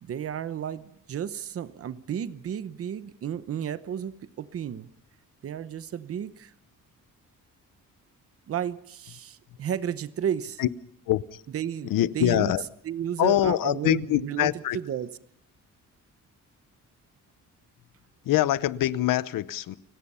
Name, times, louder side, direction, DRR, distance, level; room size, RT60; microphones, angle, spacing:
voice 1, 0.0-4.9 5.4-6.5 8.5-10.6 11.5-12.5 12.8-14.5 14.7-15.1, right 9 dB, 45° right, 0.9 m, -32 dB
voice 2, 11.1-11.4 11.8-12.6 13.2-14.8 18.2-19.8, left 13 dB, 90° left, 0.8 m, -24 dB
29.5 x 17.0 x 5.6 m
wide cardioid pair, 175°, 32 cm